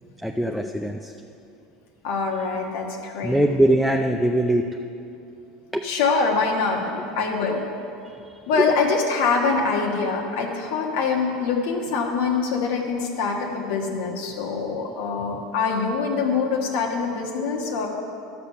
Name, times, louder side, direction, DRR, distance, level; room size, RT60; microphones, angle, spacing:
voice 1, 0.2-1.1 3.2-4.6 5.7-5.9 8.0-8.7, right 1 dB, ahead, 2 dB, 0.4 m, -22 dB
voice 2, 2.0-3.4 5.8-7.6 8.5-17.9, left 4 dB, 80° left, -1 dB, 1.3 m, -24 dB
12.0 x 6.8 x 5.7 m, 2.7 s
supercardioid pair, 145°, 0 cm